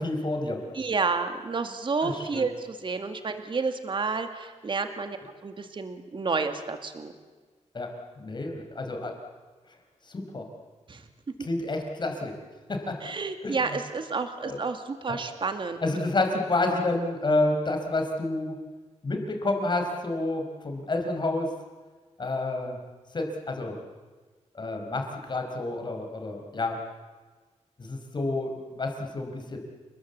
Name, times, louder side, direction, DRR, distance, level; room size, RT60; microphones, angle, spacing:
voice 1, 0.0-0.6 2.0-2.5 7.7-7.9 8.2-9.1 10.0-10.5 11.4-12.3 12.7-13.0 13.4-13.8 14.4-14.6 15.1-15.2 15.8-18.6 19.0-21.5 22.2-22.8 23.1-23.8 24.5-26.8 27.8-29.6, left 2 dB, 40° left, 3 dB, 5.0 m, -29 dB
voice 2, 0.8-5.2 5.4-7.1 10.9-11.0 11.4-11.5 13.0-15.8, right 4 dB, 45° right, 7 dB, 2.1 m, -30 dB
29.0 x 21.0 x 8.3 m, 1.4 s
wide cardioid pair, 150°, 12 cm